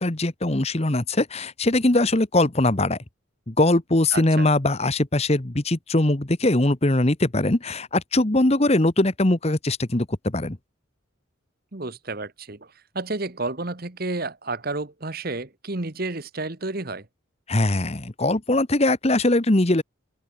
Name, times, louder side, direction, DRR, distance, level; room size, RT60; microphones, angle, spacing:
voice 1, 0.0-3.0 3.5-10.6 17.5-19.8, left 2 dB, 30° left, 1.2 m, -21 dB
voice 2, 4.1-4.5 11.7-17.1, right 2 dB, 45° right, 1.4 m, -31 dB
open air
head